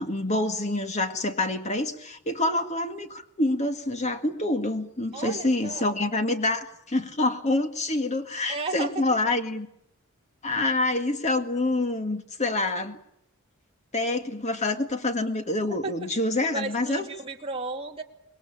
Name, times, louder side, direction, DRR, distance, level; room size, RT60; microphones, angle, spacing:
voice 1, 0.0-9.7 10.4-13.0 13.9-17.0, left 2 dB, 30° left, 6 dB, 1.9 m, -27 dB
voice 2, 5.1-5.9 8.5-9.0 15.7-16.1 16.4-18.0, right 3 dB, 25° right, 1 dB, 2.4 m, -34 dB
25.5 x 21.0 x 8.8 m, 0.78 s
head